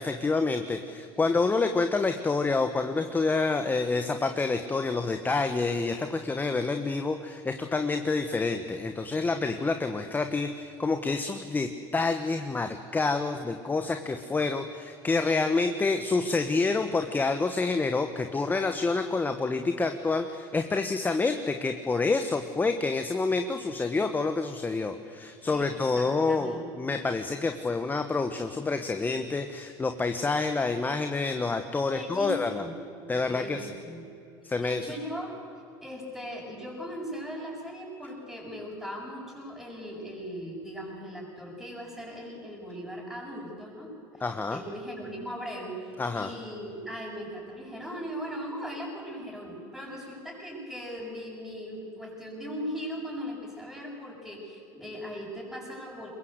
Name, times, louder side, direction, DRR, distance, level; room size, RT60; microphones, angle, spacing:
voice 1, 0.0-32.6 33.1-33.6 34.4-34.9 44.2-44.6 46.0-46.3, left 3 dB, 15° left, 7 dB, 1.3 m, -28 dB
voice 2, 25.5-26.7 31.9-32.7 33.2-34.1 34.6-44.2 44.5-56.1, equal, ahead, -8 dB, 7.3 m, -39 dB
23.0 x 21.0 x 8.2 m, 2.7 s
supercardioid pair, 115°, 11 cm